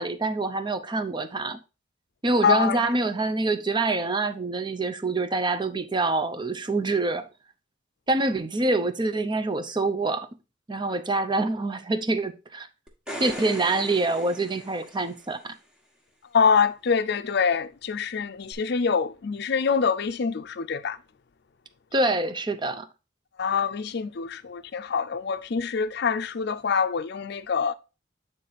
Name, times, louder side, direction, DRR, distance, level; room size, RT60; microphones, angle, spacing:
voice 1, 0.0-1.6 2.2-7.3 8.1-10.3 10.7-12.7 13.2-15.5 21.9-22.9, right 2 dB, 25° right, 0.6 m, -26 dB
voice 2, 2.4-2.8 16.3-21.0 23.4-27.7, left 6 dB, 55° left, 0.5 m, -25 dB
sound 1, 12.9-15.4 18.5-18.6, equal, 5° right, 1.3 m, -39 dB
8.4 x 3.7 x 4.1 m
head